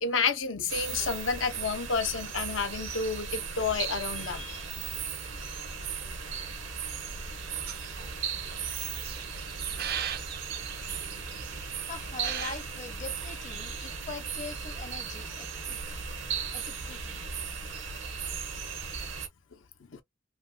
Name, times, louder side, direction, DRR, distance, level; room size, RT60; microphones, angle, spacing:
voice 1, 0.0-4.8 7.1-7.2 7.5-7.7 13.6-13.7 19.9-20.0, left 5 dB, 80° left, 0.7 m, -30 dB
sound 1, 0.7-19.3, right 6 dB, 70° right, 0.9 m, -37 dB
sound 2, 7.7-13.3, right 8 dB, 55° right, 0.5 m, -40 dB
voice 2, 11.9-15.8 16.5-17.2, left 4 dB, 40° left, 0.6 m, -42 dB
2.9 x 2.9 x 2.3 m
head